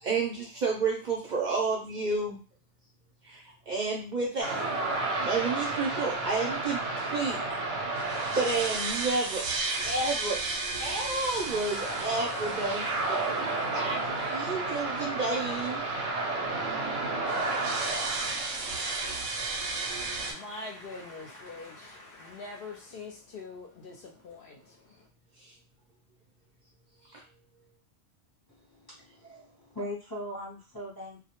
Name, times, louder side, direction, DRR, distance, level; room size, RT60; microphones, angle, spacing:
voice 1, 0.0-2.4 3.2-4.7 5.2-7.6 8.4-9.5 9.8-10.4 10.8-13.5 13.7-14.0 14.3-15.8 25.4-25.5 27.1-27.2, right 3 dB, 55° right, -3 dB, 0.6 m, -31 dB
sound 1, 4.4-20.3, right 3 dB, 90° right, 1.0 m, -31 dB
voice 2, 19.7-25.1, left 3 dB, 60° left, 0 dB, 0.7 m, -44 dB
voice 3, 28.5-31.2, equal, 30° left, -5 dB, 0.5 m, -40 dB
2.2 x 2.0 x 2.8 m, 0.34 s
omnidirectional pair, 1.2 m